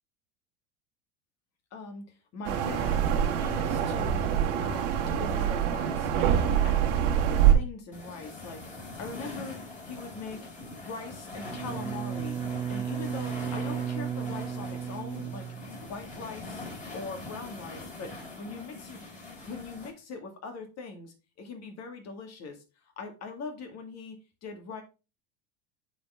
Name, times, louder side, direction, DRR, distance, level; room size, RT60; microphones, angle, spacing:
voice 1, 1.7-2.0 2.3-3.1 3.3-4.2 4.6-9.6 9.8-10.4 10.8-12.4 12.7-15.5 15.8-16.7 16.9-19.1 19.5-22.6 23.0-24.8, left 4 dB, 45° left, 2.1 m, -41 dB
sound 1, 2.4-7.5, right 9 dB, 75° right, 1.7 m, -25 dB
sound 2, 7.9-19.9, left 2 dB, 20° left, 3.9 m, -43 dB
Bowed string instrument, 11.4-16.2, right 8 dB, 10° right, 0.9 m, -35 dB
8.3 x 4.4 x 3.6 m
hypercardioid pair, 100°, 37 cm